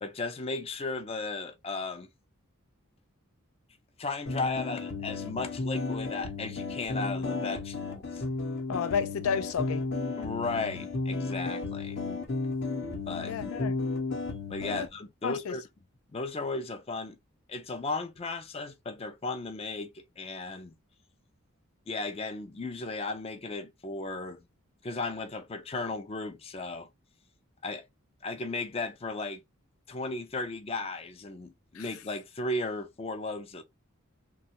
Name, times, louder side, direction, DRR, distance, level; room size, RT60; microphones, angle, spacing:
voice 1, 0.0-2.1 4.0-8.2 10.2-12.0 13.1-13.3 14.5-15.6 16.1-17.2 17.5-20.7 21.9-24.5 24.8-26.9 27.6-27.9 28.2-29.4 29.9-33.6, left 3 dB, 30° left, 0.4 m, -35 dB
sound 1, 4.3-14.9, left 3 dB, 55° left, 0.8 m, -33 dB
voice 2, 8.7-9.9 13.2-13.7 14.7-14.9 15.2-15.5 31.7-31.9, left 6 dB, 85° left, 0.4 m, -31 dB
3.0 x 2.3 x 2.8 m
head